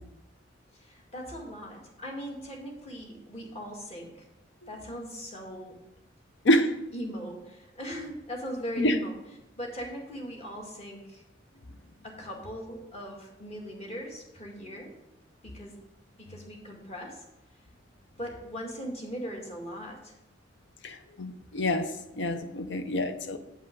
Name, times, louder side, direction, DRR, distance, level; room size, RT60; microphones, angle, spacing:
voice 1, 0.8-4.2 4.7-5.7 6.9-9.2 9.6-11.2 12.0-15.0 15.4-15.7 16.2-17.2 18.2-20.1, equal, 35° left, 2.0 m, -39 dB
voice 2, 20.8-21.9 22.2-23.4, left 1 dB, 70° left, 0.8 m, -26 dB
8.7 x 5.5 x 5.3 m
head